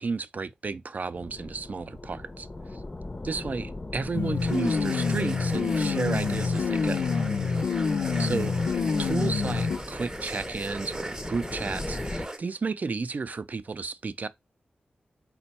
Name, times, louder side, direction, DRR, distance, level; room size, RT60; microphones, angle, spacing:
voice 1, 0.0-2.8 3.2-7.1 8.2-8.5 9.0-14.3, right 4 dB, 50° right, 0.4 m, -32 dB
sound 1, 1.1-12.3, left 2 dB, 30° left, 0.6 m, -40 dB
sound 2, 4.1-9.8, left 5 dB, 85° left, 0.5 m, -27 dB
sound 3, 4.4-12.4, right 1 dB, 20° right, 0.7 m, -38 dB
4.3 x 2.2 x 4.1 m
cardioid pair, 55°, 3 cm